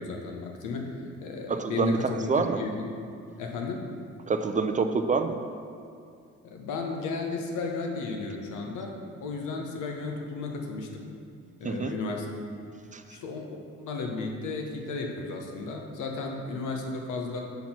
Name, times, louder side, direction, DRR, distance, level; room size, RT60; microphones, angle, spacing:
voice 1, 0.0-2.8 3.4-3.8 6.4-8.9 9.2-11.1 11.6-12.3 13.1-13.5 13.8-17.4, left 4 dB, 85° left, 2 dB, 1.0 m, -34 dB
voice 2, 1.5-2.6 4.3-5.4 11.6-11.9 12.9-13.0, right 4 dB, 25° right, 8 dB, 0.3 m, -26 dB
5.8 x 4.4 x 5.7 m, 2.4 s
cardioid pair, 90°, 30 cm